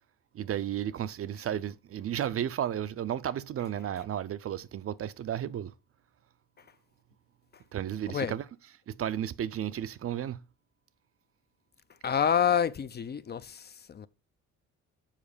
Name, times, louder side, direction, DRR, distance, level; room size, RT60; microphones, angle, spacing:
voice 1, 0.3-5.7 7.7-8.5 8.9-10.4, right 10 dB, 50° right, 0.5 m, -33 dB
voice 2, 12.0-13.6 13.9-14.1, left 8 dB, 35° left, 0.5 m, -27 dB
7.4 x 4.7 x 5.0 m
cardioid pair, 90°, 30 cm